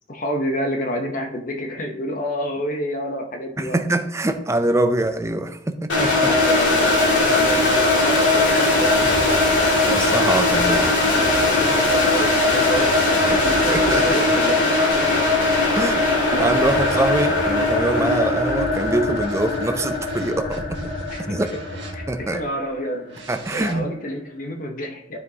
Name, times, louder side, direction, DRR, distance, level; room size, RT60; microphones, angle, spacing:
voice 1, 0.1-3.8 6.2-9.5 11.0-14.6 21.1-21.2 21.9-23.1 23.5-25.2, equal, 45° left, 4 dB, 0.7 m, -29 dB
voice 2, 3.6-6.3 9.9-11.1 13.3-13.4 13.7-14.4 15.8-20.9 21.3-21.5 22.1-22.4 23.3-23.9, right 1 dB, 15° right, 8 dB, 0.4 m, -24 dB
sound 1, 5.9-22.7, left 2 dB, 80° left, 2.3 m, -20 dB
sound 2, 9.0-14.0 15.0-22.3 23.1-23.7, right 1 dB, 70° right, 1.5 m, -36 dB
12.0 x 4.8 x 2.8 m, 0.80 s
head